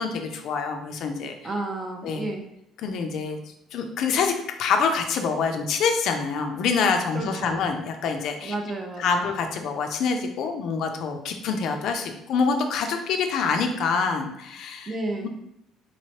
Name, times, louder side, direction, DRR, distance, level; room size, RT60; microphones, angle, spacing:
voice 1, 0.0-1.3 2.0-2.3 2.8-3.4 3.7-4.3 4.6-8.5 9.0-14.9 15.2-15.3, left 5 dB, 55° left, 5 dB, 0.4 m, -26 dB
voice 2, 1.4-2.4 7.1-7.6 8.4-9.3 14.9-15.3, right 2 dB, 20° right, 3 dB, 0.5 m, -31 dB
4.2 x 3.1 x 2.8 m, 0.80 s
cardioid pair, 175°, 0 cm